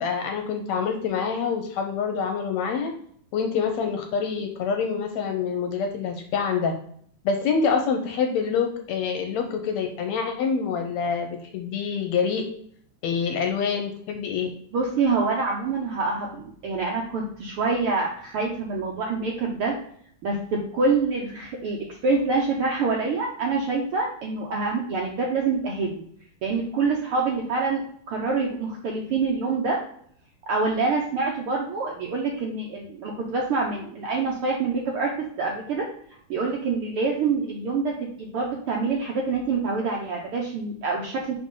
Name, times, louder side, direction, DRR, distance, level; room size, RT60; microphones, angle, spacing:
voice 1, 0.0-2.9 3.3-6.7 7.3-12.5 13.0-14.5, left 6 dB, 75° left, 5 dB, 1.8 m, -26 dB
voice 2, 14.7-19.8 20.2-26.0 26.4-29.8 30.5-35.1 35.4-35.9 36.3-41.3, right 4 dB, 75° right, -1 dB, 1.3 m, -26 dB
5.3 x 5.3 x 3.7 m, 0.62 s
omnidirectional pair, 3.6 m